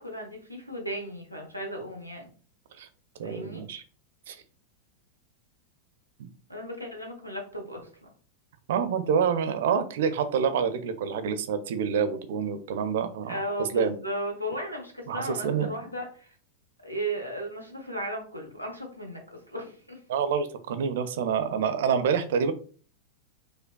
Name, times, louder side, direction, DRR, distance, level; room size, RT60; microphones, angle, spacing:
voice 1, 0.0-2.3 3.2-3.6 6.5-7.9 13.3-16.3 16.8-20.0, right 1 dB, 90° left, 1 dB, 0.9 m, -35 dB
voice 2, 3.2-3.8 4.3-4.4 6.2-6.3 8.7-13.9 15.1-15.7 20.1-22.5, right 7 dB, 55° right, 10 dB, 0.4 m, -27 dB
5.1 x 2.1 x 2.2 m, 0.41 s
figure-of-eight pair, 90°, 0 cm